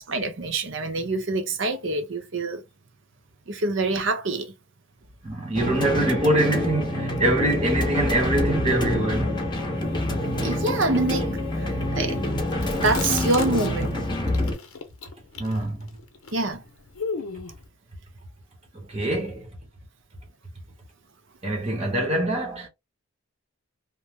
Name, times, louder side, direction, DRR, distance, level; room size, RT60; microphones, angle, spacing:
voice 1, 0.1-2.6 3.5-4.5 10.4-12.2 12.5-14.0 16.3-16.6, right 2 dB, 60° right, 0.7 m, -26 dB
voice 2, 5.2-9.4 15.4-15.9 18.7-19.5 21.4-22.7, right 1 dB, 25° right, 0.8 m, -24 dB
sound 1, 5.5-14.5, left 1 dB, 20° left, 0.7 m, -26 dB
Chewing mastication, 12.5-14.0 14.3-17.7, left 5 dB, 85° left, 0.8 m, -36 dB
2.9 x 2.0 x 3.4 m
head